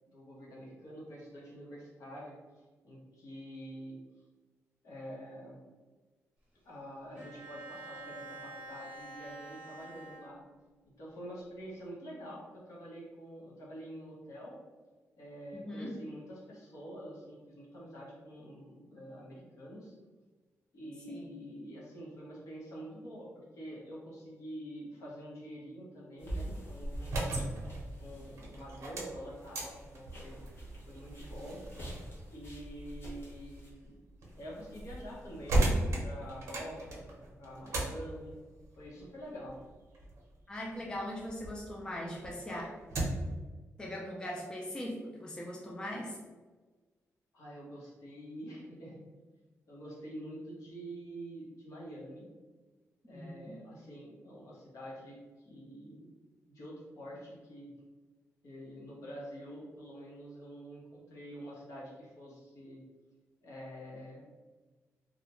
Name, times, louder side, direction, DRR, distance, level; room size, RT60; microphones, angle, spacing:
voice 1, 0.1-2.3 2.8-4.0 4.8-5.6 6.6-10.4 11.0-14.5 15.2-19.9 20.7-27.4 28.0-30.4 30.9-31.6 32.3-34.0 34.3-38.3 38.8-39.6 47.3-49.0 49.7-52.3 53.1-55.2 55.5-56.1 56.5-57.7 58.4-62.8 63.4-64.2, equal, 70° left, -5 dB, 0.9 m, -47 dB
Bowed string instrument, 7.2-10.8, right 2 dB, 20° right, 0.7 m, -48 dB
voice 2, 15.5-16.0 21.1-21.3 40.5-42.7 43.8-46.2 53.1-53.5, left 1 dB, 15° left, -2 dB, 0.3 m, -40 dB
sound 1, 26.2-33.7, right 1 dB, 45° left, 0.7 m, -45 dB
sound 2, 26.9-41.6 42.0-43.4, right 1 dB, 60° right, 0.6 m, -37 dB
2.4 x 2.1 x 2.9 m, 1.3 s
wide cardioid pair, 155°, 5 cm